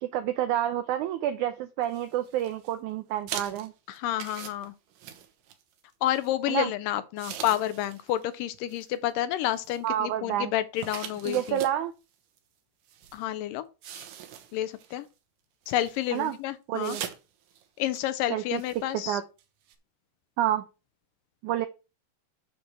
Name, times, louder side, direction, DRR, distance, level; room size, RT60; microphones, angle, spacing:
voice 1, 0.0-3.7 6.5-6.7 9.8-10.5 11.2-11.9 16.1-16.4 16.7-17.1 18.3-18.6 19.1-19.2 20.4-20.6 21.4-21.7, right 12 dB, 85° right, 1.7 m, -28 dB
sound 1, 1.8-2.7 3.3-5.8 6.1-6.3 7.2-8.2 8.5-8.9 9.5-9.9 10.8-11.8 12.4-12.5 12.9-13.2 13.8-15.0 15.7-16.4 16.8-17.2 17.5-17.6 17.9-18.1 18.5-18.8 19.4-19.5 19.7-19.8, right 9 dB, 70° right, 2.5 m, -41 dB
voice 2, 3.9-4.7 6.0-11.6 13.1-13.7 14.5-15.1 15.7-17.0 17.8-19.2, left 13 dB, 80° left, 2.1 m, -29 dB
8.1 x 4.5 x 6.7 m
omnidirectional pair, 4.2 m